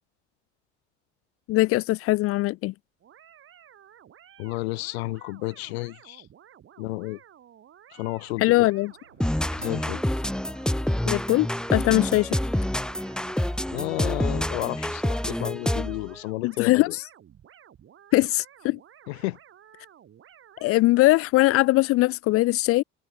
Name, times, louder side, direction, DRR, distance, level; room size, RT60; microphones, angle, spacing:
voice 1, 1.5-2.7 8.4-8.9 11.1-12.4 16.4-16.9 18.1-18.8 20.6-22.8, left 19 dB, 40° left, 0.6 m, -21 dB
sound 1, 3.0-20.8, right 10 dB, 35° right, 3.1 m, -53 dB
voice 2, 4.4-6.3 6.8-7.2 7.9-8.7 9.5-10.0 13.7-16.9 19.1-19.4, left 22 dB, 65° left, 2.4 m, -32 dB
sound 2, 8.0-15.4, right 1 dB, 90° right, 6.4 m, -60 dB
sound 3, 9.2-16.1, left 1 dB, ahead, 1.3 m, -27 dB
figure-of-eight pair, 60°, 35 cm